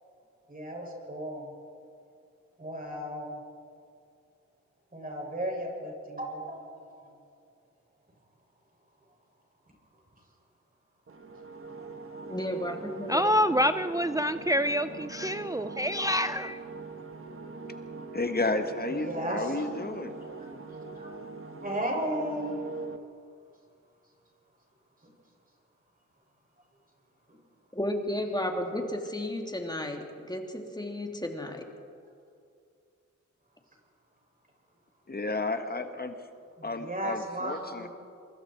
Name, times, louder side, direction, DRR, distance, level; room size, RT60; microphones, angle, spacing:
voice 1, 0.5-1.5 2.6-3.4 4.9-6.8 19.0-19.4 20.4-20.5 20.9-21.1 21.6-22.6 36.6-37.9, right 1 dB, 30° right, -1 dB, 7.1 m, -34 dB
sound 1, 11.1-23.0, right 3 dB, 45° right, 1.7 m, -42 dB
voice 2, 12.3-13.4 27.7-31.6, left 1 dB, 15° left, 2 dB, 3.1 m, -33 dB
voice 3, 13.1-16.6, equal, 10° right, 11 dB, 0.6 m, -27 dB
voice 4, 18.1-20.2 35.1-36.3 36.6-37.9, left 2 dB, 30° left, 7 dB, 1.6 m, -32 dB
26.5 x 24.0 x 4.7 m, 2.3 s
cardioid pair, 65°, 30 cm